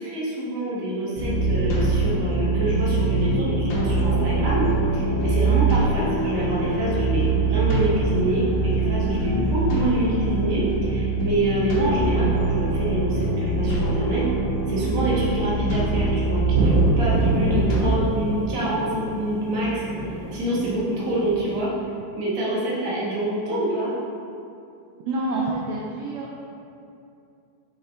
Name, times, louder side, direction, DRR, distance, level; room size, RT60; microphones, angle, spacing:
voice 1, 0.0-14.3 14.7-21.7 22.2-23.9, right 1 dB, 45° right, -8 dB, 1.1 m, -26 dB
sound 1, 1.2-18.0, right 3 dB, 85° left, 2.6 m, -23 dB
sound 2, 16.5-21.6, right 1 dB, 65° right, 1.7 m, -27 dB
voice 2, 25.1-26.4, right 2 dB, 85° right, -4 dB, 1.5 m, -27 dB
7.2 x 4.5 x 3.7 m, 2.6 s
omnidirectional pair, 3.8 m